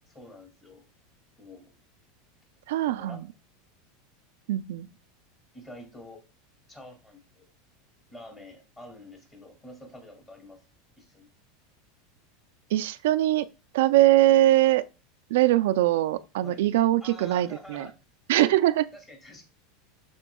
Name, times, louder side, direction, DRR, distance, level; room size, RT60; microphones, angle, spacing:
voice 1, 0.0-0.9 1.4-1.7 2.7-3.3 5.5-6.2 6.7-7.5 8.1-10.6 11.0-11.3 16.4-16.6 17.0-18.0 18.3-18.5 18.9-19.5, left 1 dB, 15° left, 2.2 m, -47 dB
voice 2, 2.7-3.2 4.5-4.9 12.7-13.5 13.7-14.8 15.3-17.9 18.3-18.9, right 15 dB, 75° right, 0.4 m, -22 dB
12.0 x 4.3 x 2.3 m
supercardioid pair, 155°, 0 cm